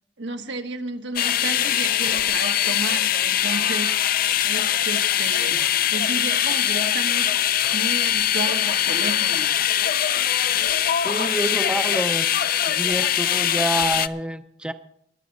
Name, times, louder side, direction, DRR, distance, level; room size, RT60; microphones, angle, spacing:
voice 1, 0.2-4.2 4.4-9.5, right 3 dB, 85° right, 5 dB, 1.5 m, -33 dB
sound 1, 1.2-14.1, left 11 dB, 55° left, 0.5 m, -22 dB
voice 2, 11.0-12.3 12.6-14.7, right 1 dB, 5° right, 9 dB, 0.5 m, -27 dB
22.5 x 8.9 x 4.1 m, 0.70 s
head